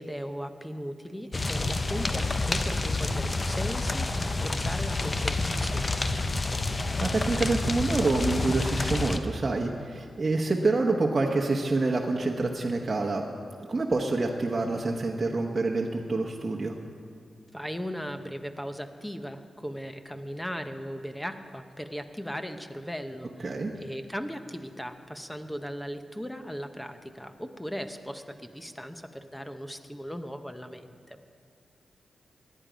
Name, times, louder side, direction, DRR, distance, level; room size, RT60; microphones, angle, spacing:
voice 1, 0.0-6.0 17.5-31.2, equal, 5° left, 8 dB, 0.9 m, -38 dB
sound 1, 1.3-9.2, left 2 dB, 35° left, 0.8 m, -28 dB
voice 2, 7.0-13.2 13.7-16.8 23.4-23.7, right 3 dB, 40° right, 0 dB, 1.0 m, -27 dB
16.5 x 10.5 x 5.1 m, 2.3 s
cardioid pair, 70°, 0 cm